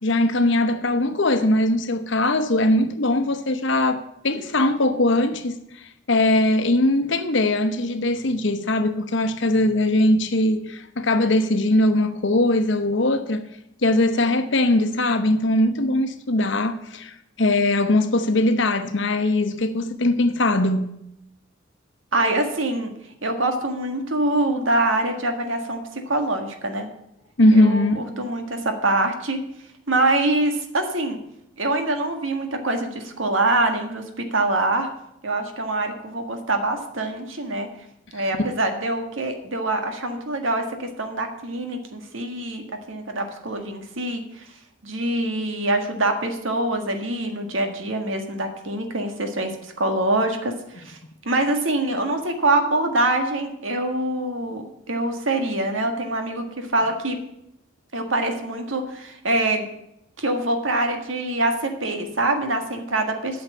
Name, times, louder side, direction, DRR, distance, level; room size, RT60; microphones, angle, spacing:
voice 1, 0.0-13.5 13.8-20.9 27.4-28.0 38.2-38.3, left 1 dB, 65° left, 0.9 m, -20 dB
voice 2, 22.1-22.9 23.2-26.9 27.5-29.4 29.9-31.2 31.6-34.9 35.2-37.7 38.1-44.4 44.8-51.0 51.2-57.2 57.9-59.7 60.2-63.4, right 2 dB, 75° right, 1.7 m, -24 dB
9.0 x 6.5 x 8.4 m
head